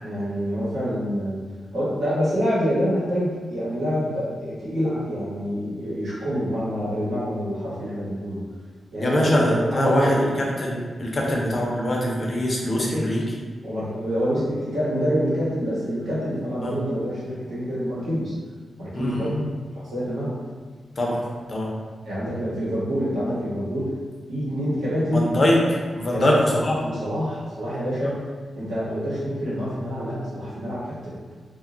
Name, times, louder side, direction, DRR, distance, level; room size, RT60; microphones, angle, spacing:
voice 1, 0.0-1.4 1.7-8.4 8.9-10.3 11.2-11.4 12.7-13.1 13.6-18.3 18.8-19.4 19.7-20.4 22.0-24.0 24.3-25.3 26.1-26.4 26.8-31.2, equal, 85° right, -9 dB, 0.9 m, -26 dB
voice 2, 9.0-13.2 16.6-16.7 18.9-19.4 21.0-21.2 21.5-21.7 25.1-25.6 25.9-26.8 28.0-28.1, left 1 dB, 35° left, -2 dB, 0.5 m, -23 dB
2.2 x 2.0 x 3.7 m, 1.5 s
wide cardioid pair, 145°, 0 cm